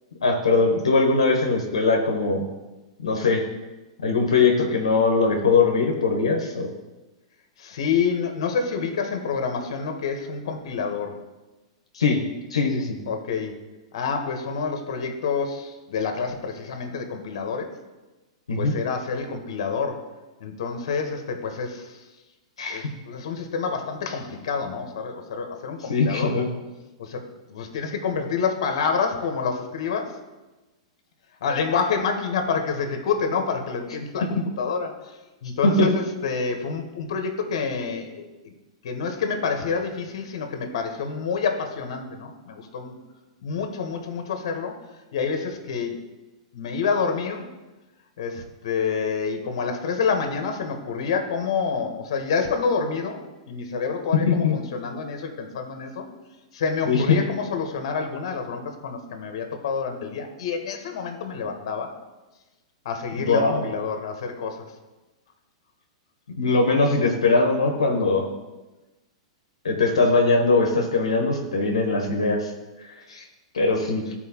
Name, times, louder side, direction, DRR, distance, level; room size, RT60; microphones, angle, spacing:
voice 1, 0.2-2.5 3.0-3.4 4.0-6.7 11.9-12.2 12.5-13.0 18.5-18.7 22.6-22.9 25.9-26.5 34.4-34.5 35.6-35.9 54.1-54.6 56.9-57.2 63.2-63.6 66.3-68.3 69.6-72.5 73.1-73.2 73.5-74.1, left 3 dB, 90° left, 1 dB, 1.0 m, -21 dB
voice 2, 7.6-11.2 13.1-13.6 13.9-17.8 18.6-20.0 20.4-22.0 22.7-26.4 27.0-30.2 31.4-38.5 38.8-43.0 43.4-44.8 45.1-46.0 46.5-47.5 48.2-53.2 53.5-56.1 56.5-61.9 62.8-64.7, left 5 dB, 65° left, 5 dB, 1.2 m, -28 dB
12.5 x 4.3 x 2.9 m, 1.1 s
hypercardioid pair, 115°, 3 cm